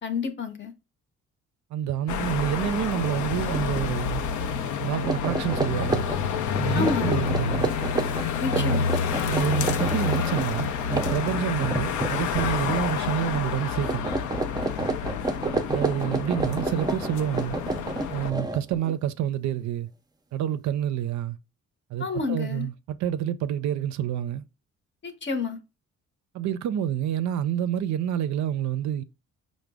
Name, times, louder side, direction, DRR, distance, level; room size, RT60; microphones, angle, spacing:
voice 1, 0.0-0.7 6.7-7.2 8.4-8.9 22.0-22.7 25.0-25.6, left 4 dB, 40° left, 0.8 m, -29 dB
voice 2, 1.7-4.2 4.8-6.1 6.6-7.7 8.6-8.9 9.3-14.1 15.7-17.6 18.1-19.9 20.3-21.4 21.9-24.4 26.3-29.0, right 10 dB, 70° right, 0.4 m, -28 dB
sound 1, 2.1-18.3, left 7 dB, 80° left, 0.5 m, -29 dB
sound 2, 3.5-3.8 4.2-4.4 4.9-12.9 13.2-13.6 13.8-18.9, right 3 dB, 15° right, 0.4 m, -30 dB
4.9 x 2.1 x 3.4 m
cardioid pair, 90°, 30 cm